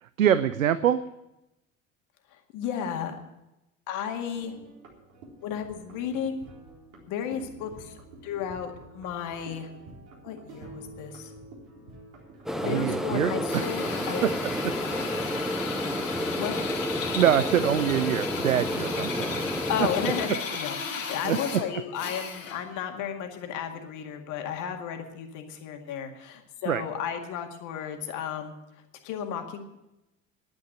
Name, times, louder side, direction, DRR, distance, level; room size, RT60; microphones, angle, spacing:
voice 1, 0.0-1.0 12.6-13.6 14.2-14.3 14.6-14.7 17.2-19.5 19.8-19.9 21.2-21.4 26.7-26.8, right 10 dB, 80° right, 14 dB, 0.6 m, -25 dB
voice 2, 2.5-3.1 3.9-4.6 5.4-6.5 7.1-7.9 8.2-9.7 10.2-11.3 12.6-14.2 16.4-16.5 17.6-17.7 19.7-28.5 29.0-29.6, left 8 dB, 50° left, 4 dB, 2.1 m, -33 dB
sound 1, 4.4-12.7, right 2 dB, 60° right, 4.1 m, -48 dB
sound 2, 12.5-20.3, equal, ahead, 1.0 m, -31 dB
Drill, 13.5-22.7, left 5 dB, 70° left, 2.3 m, -35 dB
10.5 x 9.4 x 9.7 m, 0.93 s
figure-of-eight pair, 70°, 39 cm